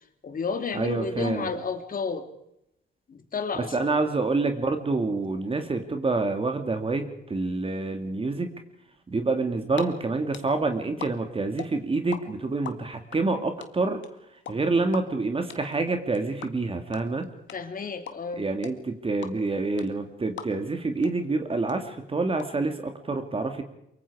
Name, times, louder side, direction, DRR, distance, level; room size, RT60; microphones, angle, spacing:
voice 1, 0.2-2.3 3.1-4.0 17.5-18.4, left 5 dB, 45° left, 7 dB, 2.8 m, -31 dB
voice 2, 0.7-1.5 3.6-8.5 9.1-14.0 14.5-17.3 18.4-23.6, right 3 dB, 30° right, 6 dB, 2.3 m, -27 dB
sound 1, 9.4-9.8 10.1-12.2 12.5-20.8 21.0-21.1 21.4-22.4, left 9 dB, 65° left, 2.0 m, -39 dB
24.0 x 23.5 x 4.9 m, 0.82 s
cardioid pair, 90°, 20 cm